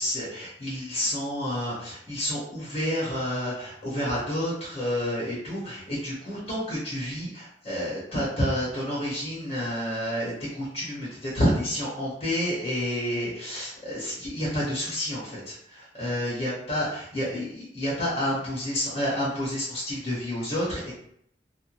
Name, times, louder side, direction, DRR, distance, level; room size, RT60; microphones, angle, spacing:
voice 1, 0.0-20.9, equal, 35° left, -8 dB, 1.0 m, -29 dB
2.5 x 2.3 x 3.0 m, 0.68 s
head